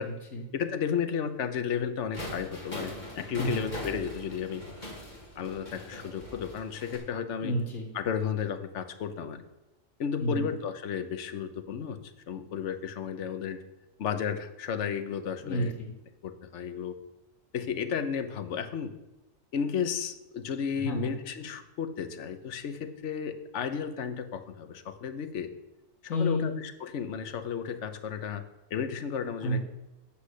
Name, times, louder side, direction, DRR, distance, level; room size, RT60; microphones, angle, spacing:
voice 1, 0.0-0.4 3.4-3.6 7.4-7.9 10.2-10.5 15.4-15.9 20.8-21.1 26.1-26.5 29.4-29.6, equal, 80° left, -1 dB, 2.4 m, -30 dB
voice 2, 0.5-4.6 5.4-7.5 7.9-9.4 10.0-12.0 12.3-13.6 14.0-15.7 16.2-17.0 17.5-18.9 19.5-25.5 26.1-28.4 28.7-29.6, left 7 dB, 65° left, 9 dB, 1.2 m, -33 dB
sound 1, 2.1-7.0, left 1 dB, 35° left, 2.8 m, -41 dB
8.4 x 6.4 x 8.2 m, 1.0 s
omnidirectional pair, 1.4 m